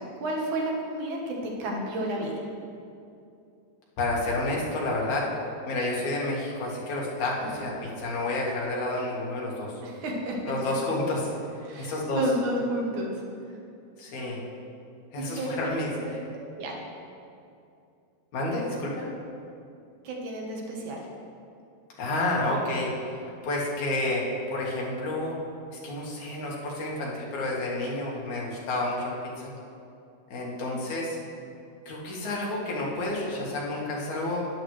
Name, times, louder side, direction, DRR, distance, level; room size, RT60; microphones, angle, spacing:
voice 1, 0.0-2.5 9.8-10.5 11.6-13.2 13.5-13.6 14.2-14.3 15.2-15.7 16.3-16.8 20.0-21.0 30.6-30.7, right 1 dB, 75° right, -1 dB, 2.7 m, -31 dB
voice 2, 4.0-5.3 5.7-9.7 10.5-11.3 11.8-12.2 14.0-14.4 15.1-16.2 18.3-19.1 22.0-22.9 23.4-24.2 24.5-25.4 25.8-29.5 30.3-31.2 31.9-34.4, left 2 dB, 70° left, -4 dB, 2.9 m, -30 dB
13.0 x 9.8 x 3.2 m, 2.6 s
omnidirectional pair, 3.5 m